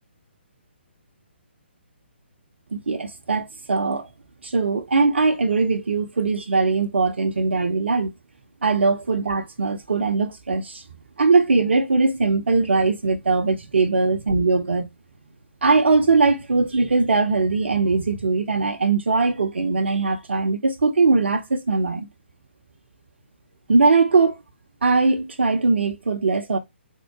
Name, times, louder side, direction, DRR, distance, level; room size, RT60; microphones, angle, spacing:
voice 1, 2.7-4.1 4.4-8.1 8.6-10.8 11.2-14.9 15.6-22.1 23.7-24.4 24.8-26.6, right 4 dB, 65° right, 0.8 m, -20 dB
3.7 x 2.4 x 4.2 m
figure-of-eight pair, 135°, 6 cm